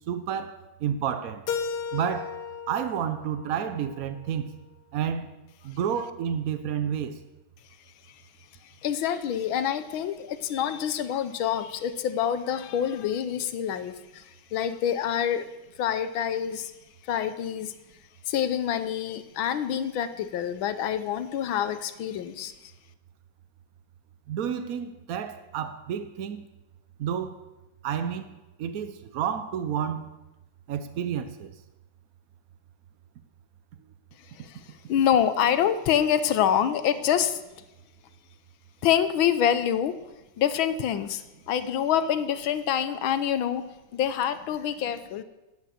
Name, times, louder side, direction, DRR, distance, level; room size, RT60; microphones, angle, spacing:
voice 1, 0.1-1.4 1.9-2.3 2.7-4.5 4.9-5.3 5.6-7.2 24.3-26.5 27.0-27.4 27.8-28.3 28.6-30.1 30.7-31.5, right 8 dB, 70° right, 0.8 m, -30 dB
Keyboard (musical), 1.5-4.4, left 6 dB, 55° left, 1.5 m, -35 dB
voice 2, 8.8-15.5 15.8-16.7 17.1-17.7 18.3-22.7 34.3-34.6 34.9-37.4 38.8-40.0 40.4-43.6 43.9-45.2, left 9 dB, 70° left, 1.5 m, -26 dB
11.5 x 9.6 x 7.5 m
omnidirectional pair, 2.4 m